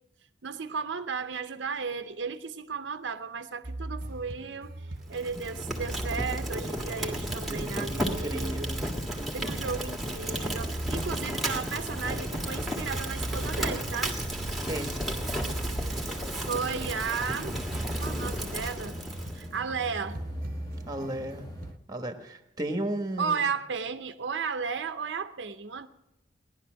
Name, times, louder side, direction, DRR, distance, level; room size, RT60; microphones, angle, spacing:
voice 1, 0.4-4.7 5.1-8.7 9.3-14.2 16.5-17.5 17.9-19.0 19.3-20.2 23.2-25.9, right 5 dB, 75° right, 0.7 m, -34 dB
sound 1, 3.6-21.8, right 1 dB, 50° right, 0.8 m, -40 dB
Fire, 5.1-19.5, right 1 dB, ahead, 1.6 m, -33 dB
voice 2, 5.3-5.7 7.5-8.8 9.2-9.4 14.6-14.9 20.9-21.5 21.9-23.5, right 1 dB, 20° right, 1.3 m, -35 dB
sound 2, 12.0-21.7, equal, 20° left, 1.1 m, -45 dB
18.0 x 11.0 x 6.3 m
head